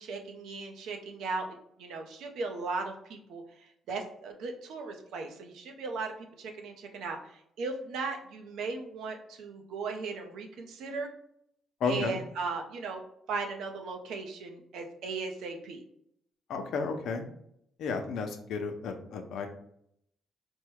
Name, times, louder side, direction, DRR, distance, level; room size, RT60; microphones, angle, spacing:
voice 1, 0.0-1.5 1.8-6.1 6.4-11.1 11.8-13.0 13.3-15.8, right 4 dB, 80° right, 4 dB, 0.7 m, -37 dB
voice 2, 11.8-12.2 16.5-17.3 17.8-19.5, left 5 dB, 75° left, 5 dB, 0.6 m, -32 dB
4.6 x 2.2 x 4.7 m, 0.73 s
cardioid pair, 90°, 0 cm